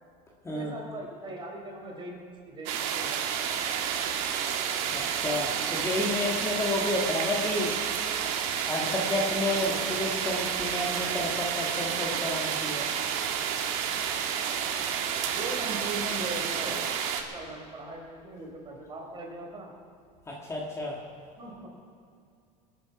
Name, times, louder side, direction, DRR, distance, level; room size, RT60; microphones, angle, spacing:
voice 1, 0.4-3.6 15.3-16.9 17.3-19.7 21.4-21.7, right 2 dB, 25° right, 0 dB, 4.0 m, -40 dB
sound 1, 2.7-17.2, right 8 dB, 75° right, 1.7 m, -30 dB
voice 2, 4.9-7.8 8.7-12.9 20.3-21.0, left 1 dB, 15° left, -2 dB, 1.8 m, -31 dB
21.0 x 9.1 x 5.9 m, 2.4 s
supercardioid pair, 135°, 18 cm